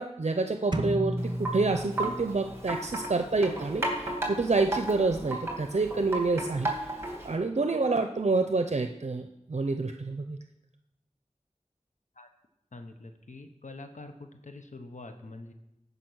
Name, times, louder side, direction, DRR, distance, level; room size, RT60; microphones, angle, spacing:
voice 1, 0.0-6.9 7.2-10.4, right 3 dB, 65° right, 6 dB, 0.6 m, -28 dB
sound 1, 0.7-2.6, right 1 dB, 35° right, 1.2 m, -33 dB
Wind chime, 1.2-7.4, right 2 dB, 20° right, 2.6 m, -35 dB
voice 2, 12.7-15.5, left 2 dB, 85° left, 6 dB, 0.9 m, -45 dB
15.0 x 5.2 x 6.2 m, 0.90 s
wide cardioid pair, 45°, 12 cm